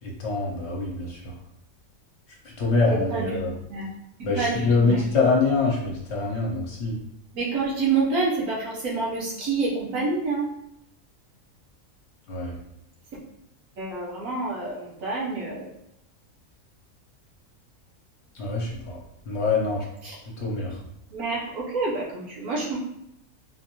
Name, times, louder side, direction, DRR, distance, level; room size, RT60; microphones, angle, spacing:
voice 1, 0.0-1.3 2.6-3.6 4.2-7.0 12.3-12.6 18.3-19.0 19.3-19.8 20.4-20.8, left 3 dB, 60° left, -3 dB, 1.1 m, -24 dB
voice 2, 2.9-3.2 3.7-3.9 4.3-5.0 7.3-10.5 13.8-15.7 20.0-20.2 21.1-22.8, right 4 dB, 75° right, -5 dB, 1.5 m, -27 dB
3.9 x 2.5 x 3.0 m, 0.78 s
omnidirectional pair, 1.4 m